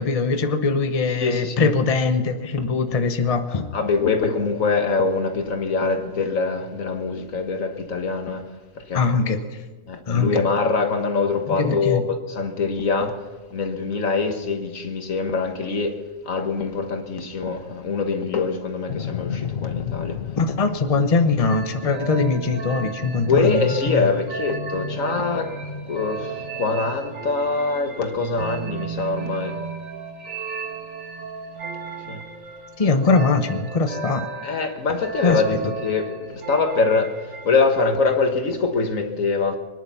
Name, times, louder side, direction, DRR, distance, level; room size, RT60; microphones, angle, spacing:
voice 1, 0.0-3.7 8.9-9.4 10.1-10.3 11.5-12.0 20.4-24.1 32.8-34.3 35.2-35.7, left 4 dB, 30° left, 0.9 m, -22 dB
voice 2, 1.2-1.7 2.6-2.7 3.7-8.5 8.8-9.0 9.9-13.2 13.5-16.0 16.3-20.2 23.2-25.5 25.9-29.6 32.1-32.2 34.4-39.6, left 4 dB, 90° left, 1.9 m, -24 dB
sound 1, 18.9-27.1, left 9 dB, 55° left, 0.8 m, -35 dB
sound 2, 21.4-37.8, right 4 dB, 90° right, 1.8 m, -34 dB
23.5 x 10.5 x 5.8 m
omnidirectional pair, 1.3 m